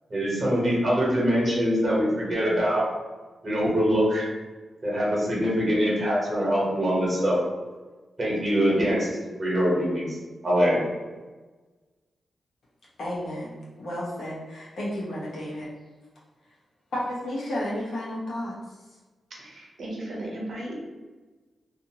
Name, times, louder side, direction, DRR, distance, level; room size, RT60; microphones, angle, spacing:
voice 1, 0.1-2.9 3.4-4.3 4.8-7.4 8.2-9.1 9.4-10.2 10.4-10.8, equal, 30° right, -6 dB, 1.0 m, -23 dB
voice 2, 13.0-15.7 16.9-18.6, left 1 dB, 65° left, -5 dB, 0.9 m, -32 dB
voice 3, 19.4-20.8, right 1 dB, 60° right, -3 dB, 0.7 m, -35 dB
2.7 x 2.5 x 2.8 m, 1.3 s
wide cardioid pair, 170°, 0 cm